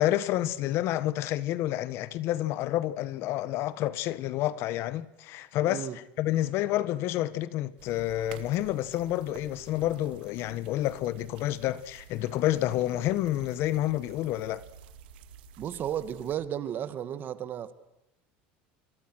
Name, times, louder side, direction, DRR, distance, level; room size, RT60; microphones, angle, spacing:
voice 1, 0.0-14.6, left 14 dB, 55° left, 1.3 m, -29 dB
sound 1, 7.8-16.4, right 8 dB, 90° right, 2.1 m, -51 dB
voice 2, 15.6-17.7, right 10 dB, 40° right, 1.8 m, -33 dB
27.0 x 25.5 x 6.3 m
supercardioid pair, 135°, 5 cm